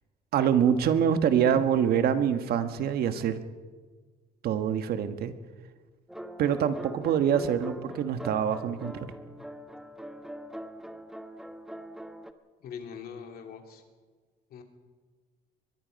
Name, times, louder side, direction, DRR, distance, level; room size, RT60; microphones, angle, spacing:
voice 1, 0.3-3.4 4.4-5.3 6.4-9.1, right 8 dB, 65° right, 9 dB, 1.4 m, -25 dB
sound 1, 6.1-12.3, equal, ahead, 1.2 m, -43 dB
voice 2, 12.6-13.8 14.5-14.6, left 7 dB, 65° left, 4 dB, 3.1 m, -42 dB
22.5 x 22.0 x 5.3 m, 1.5 s
cardioid pair, 110°, 17 cm